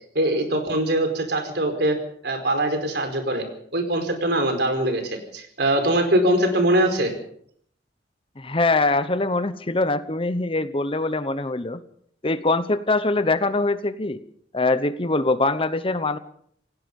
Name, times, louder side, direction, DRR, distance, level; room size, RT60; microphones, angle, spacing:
voice 1, 0.1-2.0 2.2-3.5 3.7-7.1, right 1 dB, 60° right, 6 dB, 4.8 m, -22 dB
voice 2, 8.4-11.8 12.2-14.2 14.5-16.2, left 2 dB, 30° left, 12 dB, 1.0 m, -23 dB
28.0 x 17.5 x 5.5 m, 0.65 s
head